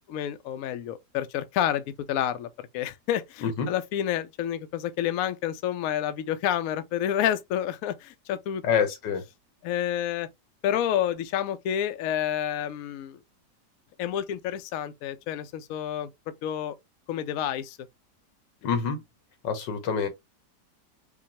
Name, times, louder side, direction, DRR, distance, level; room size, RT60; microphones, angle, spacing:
voice 1, 0.1-2.5 2.7-8.6 9.6-10.3 10.6-13.2 14.0-16.7 17.1-17.8, left 10 dB, 70° left, 0.8 m, -29 dB
voice 2, 3.4-3.7 8.6-9.2 18.6-19.0 19.4-20.1, left 6 dB, 85° left, 1.6 m, -26 dB
5.0 x 2.3 x 2.8 m
omnidirectional pair, 1.8 m